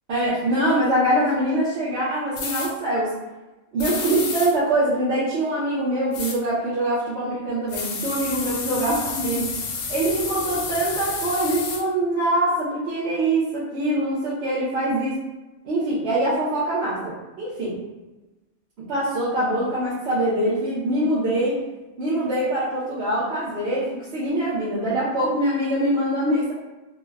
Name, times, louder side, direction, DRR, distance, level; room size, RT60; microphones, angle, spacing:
voice 1, 0.1-3.1 3.7-9.5 9.9-15.1 15.6-17.8 18.9-21.6 22.0-26.5, right 1 dB, 55° right, -10 dB, 0.8 m, -23 dB
sound 1, 2.4-2.7 3.8-4.5 6.1-6.4 7.7-11.8, left 5 dB, 85° left, 1.1 m, -30 dB
3.2 x 2.1 x 2.2 m, 1.1 s
omnidirectional pair, 1.6 m